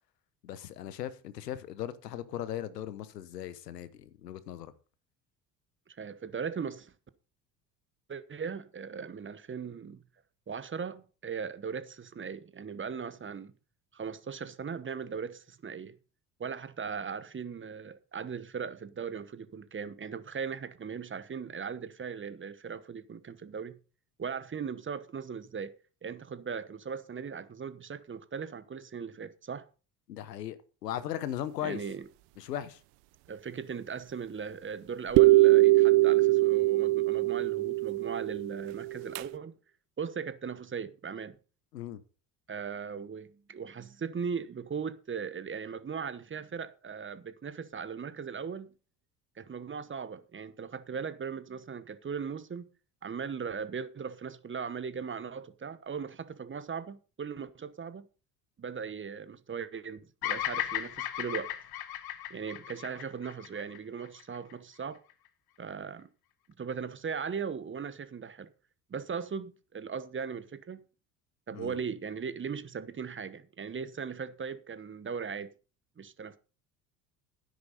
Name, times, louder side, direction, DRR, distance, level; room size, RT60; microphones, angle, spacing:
voice 1, 0.4-4.7 30.1-31.8 32.4-32.8 41.7-42.0 71.5-71.8, left 11 dB, 85° left, 1.1 m, -38 dB
voice 2, 6.0-6.9 8.1-10.0 10.5-13.5 13.9-16.0 16.4-23.8 24.2-25.7 26.0-29.6 31.6-32.0 33.3-39.5 40.0-41.3 42.5-48.7 49.4-52.7 53.0-58.0 58.6-61.5 62.3-65.0 65.6-66.1 66.6-68.5 68.9-70.8 71.5-75.5 76.0-76.4, right 6 dB, 25° right, 1.1 m, -38 dB
sound 1, 35.2-39.2, right 20 dB, 60° right, 0.7 m, -22 dB
Bird vocalization bird call bird song, 60.2-64.5, left 12 dB, 50° left, 1.3 m, -36 dB
12.5 x 10.5 x 4.1 m
hypercardioid pair, 60°, 47 cm